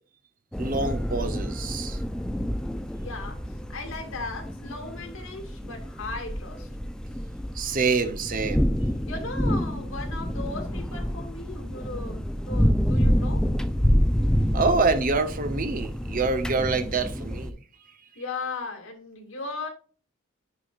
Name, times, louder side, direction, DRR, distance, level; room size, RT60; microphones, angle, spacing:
sound 1, 0.5-17.5, equal, 5° left, 0.4 m, -28 dB
voice 1, 0.6-2.0 7.6-8.7 14.5-17.5, right 4 dB, 45° right, 0.7 m, -26 dB
voice 2, 3.0-3.4 3.7-6.7 9.1-13.4 18.2-19.7, left 3 dB, 80° left, 2.2 m, -37 dB
9.9 x 4.8 x 2.4 m
head